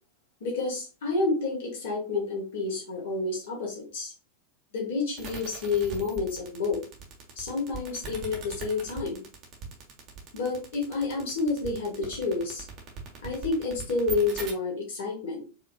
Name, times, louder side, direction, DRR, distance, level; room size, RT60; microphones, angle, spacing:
voice 1, 0.4-4.1 4.7-6.8 7.4-9.3 10.3-12.6 13.2-15.4, left 3 dB, 55° left, -2 dB, 1.9 m, -29 dB
sound 1, 5.2-14.5, right 5 dB, 35° right, 1.2 m, -40 dB
4.7 x 3.0 x 2.5 m, 0.34 s
figure-of-eight pair, 90°, 0 cm